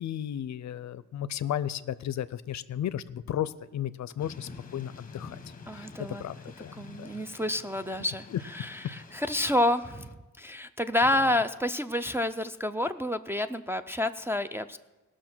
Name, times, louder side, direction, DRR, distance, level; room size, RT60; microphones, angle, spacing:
voice 1, 0.0-5.4 5.7-5.9 6.2-7.1 8.3-8.4, left 10 dB, 65° left, 17 dB, 0.5 m, -34 dB
Thunder / Rain, 4.2-10.1, left 4 dB, 25° left, 0.9 m, -48 dB
voice 2, 5.7-6.2 6.8-14.8, left 1 dB, 10° right, 6 dB, 0.3 m, -29 dB
18.0 x 6.3 x 6.0 m, 1.1 s
wide cardioid pair, 130°, 31 cm